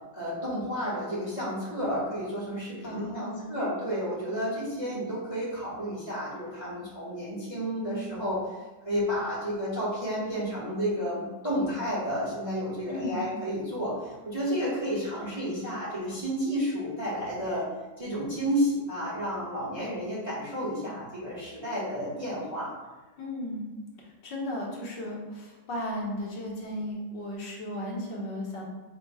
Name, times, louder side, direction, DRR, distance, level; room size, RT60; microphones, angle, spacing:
voice 1, 0.1-8.6 8.8-17.7 18.0-22.7, equal, 25° right, -7 dB, 0.7 m, -31 dB
voice 2, 2.8-3.6 12.9-13.2 23.2-23.6 24.0-28.6, left 1 dB, 70° left, -3 dB, 1.5 m, -35 dB
4.4 x 2.1 x 4.6 m, 1.2 s
omnidirectional pair, 2.0 m